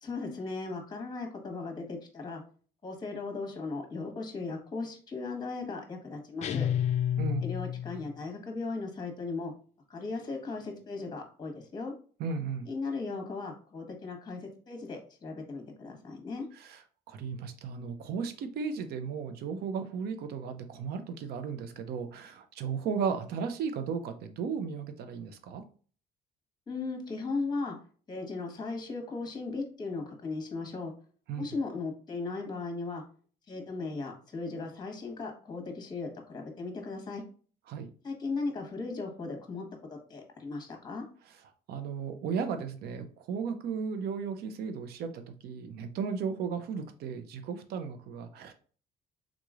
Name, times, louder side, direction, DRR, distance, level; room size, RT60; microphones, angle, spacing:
voice 1, 0.0-2.4 2.8-6.7 7.4-9.5 9.9-11.9 12.7-16.5 26.7-27.8 28.1-30.9 31.4-33.0 33.5-37.2 38.0-41.0, left 3 dB, 25° left, 3 dB, 1.2 m, -37 dB
sound 1, 6.4-8.1, left 9 dB, 45° left, 0.4 m, -30 dB
voice 2, 12.2-12.7 16.5-16.8 17.1-25.6 31.3-31.4 37.7-37.9 41.7-48.5, right 6 dB, 70° right, 8 dB, 0.6 m, -35 dB
3.7 x 3.0 x 2.4 m, 0.41 s
cardioid pair, 110°, 17 cm